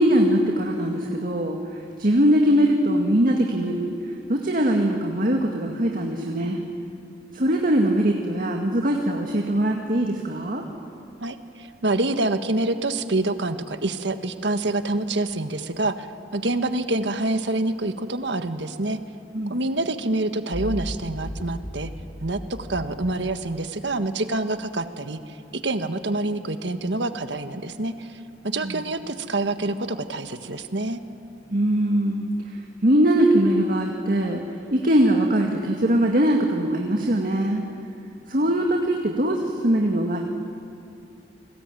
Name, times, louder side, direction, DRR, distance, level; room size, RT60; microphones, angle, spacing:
voice 1, 0.0-1.6 2.0-3.9 4.3-6.6 7.3-10.6 19.3-19.6 28.6-28.8 31.5-32.3 32.8-34.4 34.7-37.6 38.3-40.2, right 1 dB, 50° right, 2 dB, 2.0 m, -21 dB
voice 2, 11.2-16.1 16.3-19.0 19.5-21.9 22.2-22.4 22.7-25.2 25.6-28.1 28.4-31.0, right 2 dB, 80° right, 9 dB, 1.5 m, -26 dB
sound 1, 20.5-24.0, equal, 70° left, 4.4 m, -36 dB
29.5 x 20.0 x 9.1 m, 2.6 s
head